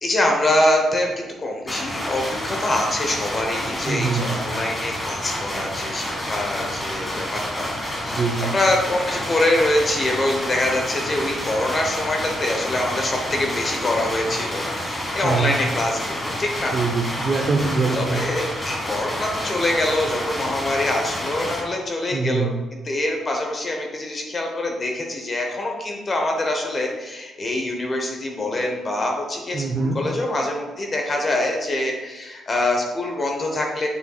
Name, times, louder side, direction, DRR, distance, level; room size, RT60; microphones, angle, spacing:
voice 1, 0.0-7.7 8.0-16.8 17.9-33.9, left 1 dB, 35° left, 2 dB, 1.1 m, -24 dB
sound 1, 1.7-21.6, left 1 dB, 20° left, 1.9 m, -29 dB
voice 2, 3.9-4.4 8.0-8.5 15.2-15.5 16.7-18.2 22.1-22.5 29.5-30.0, right 4 dB, 45° right, 1 dB, 0.7 m, -23 dB
7.1 x 6.8 x 2.4 m, 1.2 s
cardioid pair, 90°, 0 cm